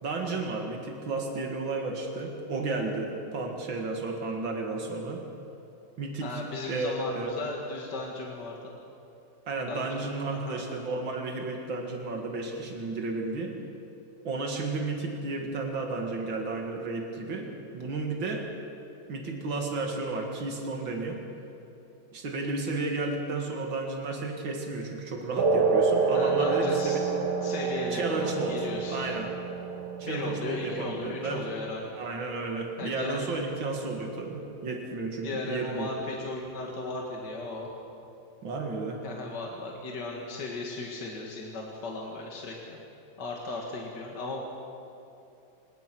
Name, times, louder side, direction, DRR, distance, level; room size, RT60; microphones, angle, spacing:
voice 1, 0.0-5.2 6.0-6.4 6.7-7.3 9.5-13.5 14.2-18.5 19.1-21.2 22.1-27.0 27.9-28.6 28.9-29.3 30.0-31.5 32.0-35.9 38.4-39.0, right 3 dB, 85° right, 2 dB, 2.8 m, -33 dB
voice 2, 6.2-8.7 9.7-10.0 10.3-10.6 26.1-27.0 27.4-29.1 30.0-31.9 32.8-33.3 35.2-37.7 39.0-42.8 43.2-44.4, left 3 dB, 65° left, -1 dB, 2.6 m, -36 dB
sound 1, 25.4-32.4, right 4 dB, 65° right, 2.2 m, -28 dB
26.0 x 19.0 x 6.2 m, 2.9 s
omnidirectional pair, 2.0 m